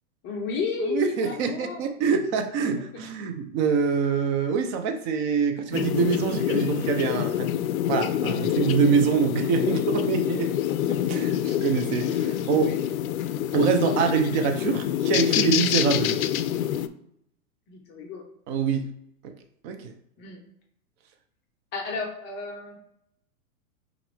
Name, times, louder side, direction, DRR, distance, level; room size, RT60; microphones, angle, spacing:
voice 1, 0.2-1.9 12.3-12.8 17.7-18.3 20.2-20.4 21.7-22.8, left 4 dB, 25° left, 0 dB, 0.7 m, -32 dB
voice 2, 0.8-7.5 7.9-10.5 10.9-12.7 13.5-16.2 18.5-18.9 19.2-19.3 19.6-19.9, right 6 dB, 35° right, 6 dB, 0.6 m, -25 dB
sound 1, 5.7-16.9, left 11 dB, 65° left, 0.5 m, -26 dB
6.0 x 2.6 x 3.3 m, 0.75 s
hypercardioid pair, 130°, 45 cm